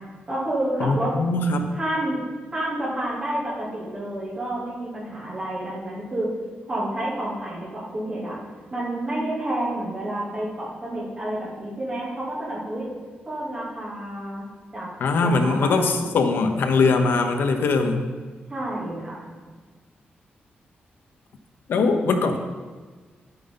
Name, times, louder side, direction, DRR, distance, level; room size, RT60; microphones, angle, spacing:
voice 1, 0.3-1.2 1.7-2.2 2.5-6.3 6.7-8.4 8.7-12.9 13.2-14.4 14.7-14.9 15.2-16.1 18.5-19.2, right 1 dB, 25° right, -8 dB, 3.1 m, -29 dB
voice 2, 0.8-1.7 15.0-18.0 21.7-22.4, left 3 dB, 80° left, 6 dB, 0.9 m, -21 dB
9.9 x 9.2 x 4.0 m, 1.4 s
wide cardioid pair, 180°, 4 cm